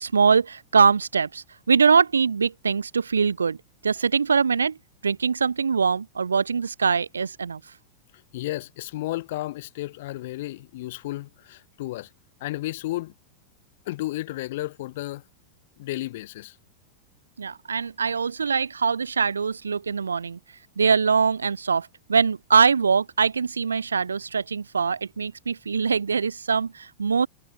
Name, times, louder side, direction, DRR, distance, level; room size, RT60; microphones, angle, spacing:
voice 1, 0.0-3.6 3.8-4.8 5.0-7.6 17.4-20.4 20.8-27.3, right 5 dB, 75° right, 0.3 m, -22 dB
voice 2, 8.3-12.1 12.4-13.1 13.9-15.2 15.8-16.6, left 17 dB, 55° left, 0.4 m, -32 dB
figure-of-eight pair, 90°, 0 cm